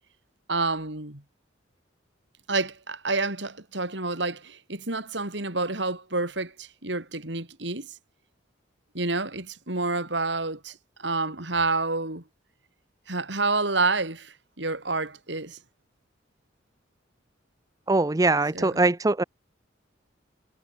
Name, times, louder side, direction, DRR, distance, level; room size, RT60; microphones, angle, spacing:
voice 1, 0.5-1.2 2.5-7.9 8.9-12.2 13.1-15.6 18.5-18.9, right 3 dB, 65° right, 4.3 m, -29 dB
voice 2, 17.9-19.2, right 2 dB, 20° right, 0.6 m, -22 dB
head